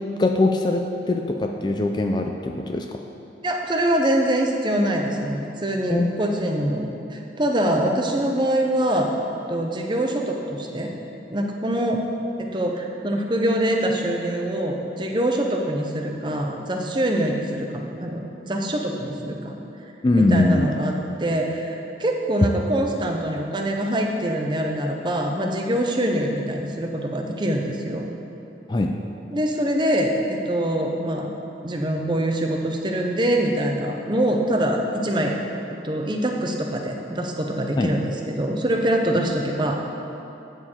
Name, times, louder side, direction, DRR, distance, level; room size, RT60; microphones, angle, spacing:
voice 1, 0.2-3.0 5.9-6.1 20.0-20.7 28.7-28.9 37.8-37.9, left 2 dB, 25° left, 3 dB, 0.3 m, -21 dB
voice 2, 3.4-9.1 9.5-10.9 11.3-12.1 12.4-19.6 20.1-28.1 29.3-31.3 31.6-35.4 35.8-39.8, right 1 dB, 25° right, 2 dB, 0.6 m, -24 dB
8.9 x 6.5 x 4.4 m, 2.9 s
head